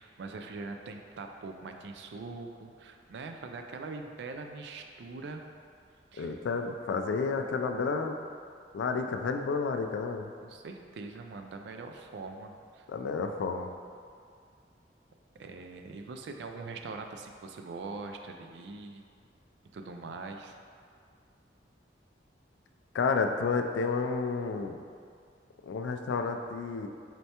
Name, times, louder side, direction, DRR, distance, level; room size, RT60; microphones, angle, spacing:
voice 1, 0.0-5.4 6.1-6.4 10.4-12.9 15.4-19.1 19.7-20.6, right 3 dB, 70° right, 4 dB, 0.3 m, -42 dB
voice 2, 6.2-8.2 8.7-10.3 12.9-13.7 22.9-24.8 25.6-26.9, left 4 dB, 85° left, 5 dB, 0.3 m, -30 dB
4.3 x 3.3 x 2.8 m, 2.2 s
head